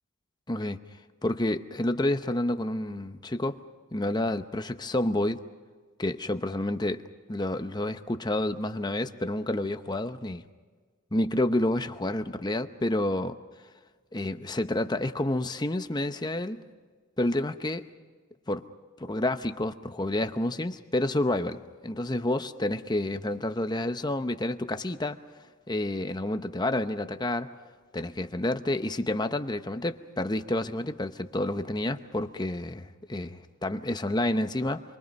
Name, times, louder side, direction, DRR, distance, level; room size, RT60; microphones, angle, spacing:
voice 1, 0.5-0.8 1.2-3.6 3.9-5.4 6.0-7.0 7.3-10.4 11.1-13.4 14.1-16.6 17.2-17.8 18.5-18.6 19.0-25.2 25.7-27.5 27.9-34.8, left 1 dB, 20° left, 9 dB, 0.8 m, -29 dB
28.5 x 23.5 x 5.4 m, 1.5 s
head